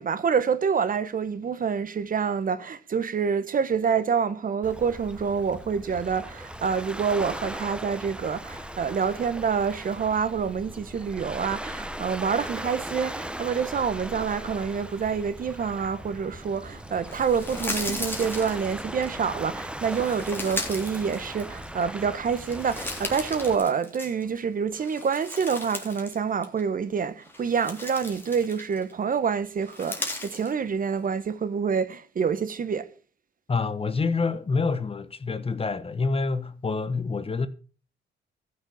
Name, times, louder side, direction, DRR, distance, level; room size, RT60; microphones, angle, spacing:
voice 1, 0.0-32.9, right 6 dB, 45° right, 1.1 m, -27 dB
Waves surf, 4.6-23.6, right 1 dB, 5° right, 1.1 m, -38 dB
sound 1, 17.1-19.1 19.8-21.8 22.2-24.4 24.7-26.2 26.4-26.6 27.2-28.9 29.6-30.5, left 2 dB, 10° left, 3.3 m, -36 dB
voice 2, 33.5-37.5, left 4 dB, 30° left, 1.1 m, -27 dB
14.0 x 6.5 x 7.0 m
cardioid pair, 90°, 20 cm